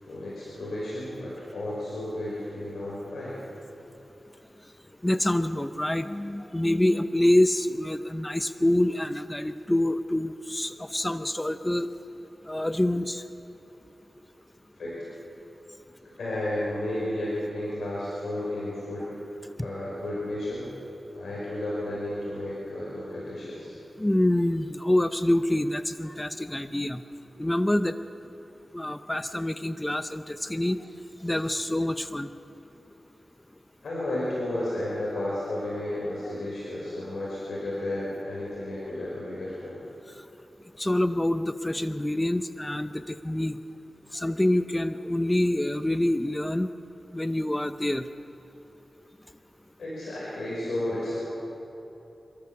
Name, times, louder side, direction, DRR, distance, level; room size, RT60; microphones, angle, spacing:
voice 1, 0.0-3.4 14.8-14.9 16.0-19.1 19.6-20.7 21.1-23.7 33.8-39.8 49.8-51.2, left 1 dB, 85° left, -7 dB, 5.6 m, -32 dB
voice 2, 5.0-11.9 12.5-13.2 24.0-27.0 27.4-27.9 28.7-30.8 31.2-32.3 36.2-36.3 40.8-43.6 44.1-46.7 47.1-48.0, left 1 dB, 15° left, 10 dB, 0.7 m, -26 dB
27.5 x 13.5 x 7.2 m, 2.9 s
wide cardioid pair, 75°, 0 cm